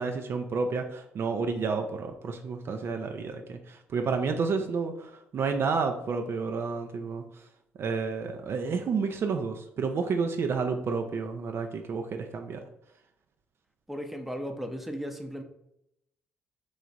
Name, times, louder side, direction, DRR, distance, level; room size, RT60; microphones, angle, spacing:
voice 1, 0.0-7.4 7.8-12.6, right 5 dB, 45° right, 5 dB, 0.4 m, -30 dB
voice 2, 13.9-15.4, equal, 5° right, 5 dB, 0.6 m, -36 dB
3.1 x 2.4 x 3.9 m, 0.82 s
hypercardioid pair, 50°, 6 cm